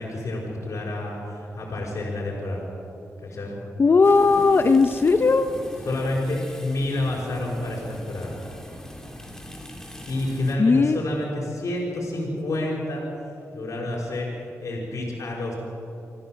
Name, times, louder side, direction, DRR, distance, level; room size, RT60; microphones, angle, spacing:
voice 1, 0.0-2.7 3.2-3.6 5.9-8.4 9.6-9.8 10.1-13.1 13.5-15.6, left 1 dB, 70° left, -4 dB, 5.3 m, -29 dB
voice 2, 3.8-5.5 10.6-11.0, left 4 dB, 45° left, 9 dB, 0.9 m, -17 dB
sound 1, 4.0-10.6, equal, 10° left, 2.8 m, -42 dB
26.5 x 15.0 x 7.8 m, 2.7 s
cardioid pair, 85°, 6 cm